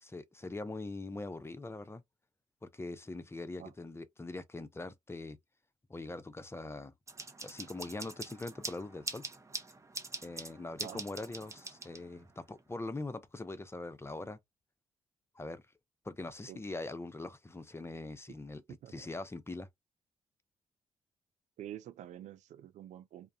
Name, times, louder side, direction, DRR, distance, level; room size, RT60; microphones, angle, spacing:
voice 1, 0.0-2.0 2.6-5.4 5.9-6.9 7.4-9.2 10.2-14.4 15.3-15.6 16.0-18.6 18.9-19.7, left 2 dB, 20° left, 0.6 m, -42 dB
sound 1, 7.1-12.3, right 3 dB, 20° right, 0.7 m, -44 dB
voice 2, 18.7-19.1 21.6-23.3, right 11 dB, 60° right, 0.4 m, -47 dB
2.3 x 2.1 x 2.6 m
hypercardioid pair, 40°, 13 cm